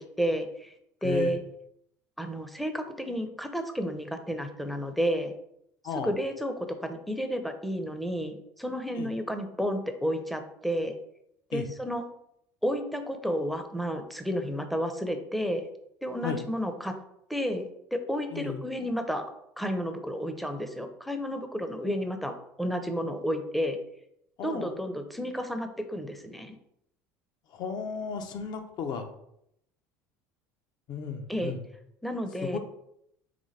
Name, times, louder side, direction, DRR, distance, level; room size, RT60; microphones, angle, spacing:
voice 1, 0.2-0.7 1.0-1.4 2.2-5.3 6.0-10.9 11.5-12.0 12.6-15.7 16.0-17.0 17.3-17.7 17.9-19.3 19.6-23.8 24.4-26.6 31.3-31.5 32.0-32.6, equal, ahead, 7 dB, 0.6 m, -31 dB
voice 2, 24.4-24.7 27.5-29.1 30.9-31.6 32.5-32.6, left 6 dB, 50° left, 6 dB, 0.7 m, -34 dB
4.0 x 3.4 x 3.2 m, 0.76 s
hypercardioid pair, 75°, 9 cm